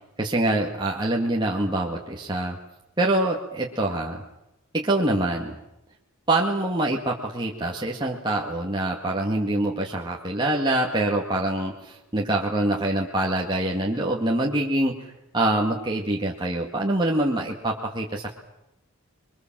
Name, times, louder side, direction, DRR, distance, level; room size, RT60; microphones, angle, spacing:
voice 1, 0.2-2.6 3.0-4.2 4.7-5.6 6.3-18.3, right 1 dB, 20° right, -2 dB, 2.1 m, -25 dB
27.0 x 23.0 x 7.6 m, 0.88 s
head